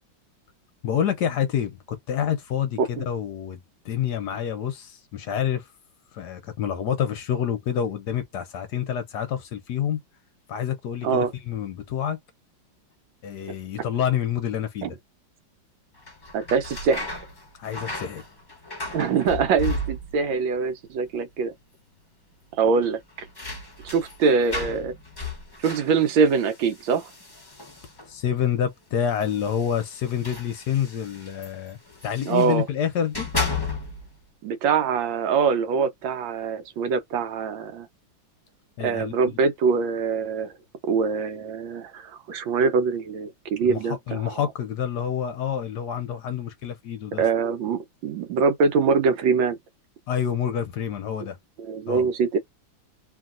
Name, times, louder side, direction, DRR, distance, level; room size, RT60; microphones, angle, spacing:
voice 1, 0.8-5.7 6.1-10.0 10.5-12.2 13.2-15.0 17.6-18.2 28.0-31.8 32.0-33.3 38.8-39.1 43.6-47.3 50.1-51.4 51.9-52.1, left 9 dB, 70° left, 1.1 m, -28 dB
sound 1, 16.0-20.4 20.6-21.3 21.6-21.7 22.8-28.2 29.1-32.6 33.0-34.2, left 3 dB, 25° left, 0.5 m, -35 dB
voice 2, 16.3-17.1 18.9-21.5 22.6-23.0 23.8-24.9 25.6-27.1 32.2-32.6 34.4-37.9 38.8-40.5 40.8-44.4 47.2-49.6 51.7-52.4, right 5 dB, 80° right, 1.4 m, -23 dB
3.0 x 2.8 x 2.4 m
omnidirectional pair, 2.1 m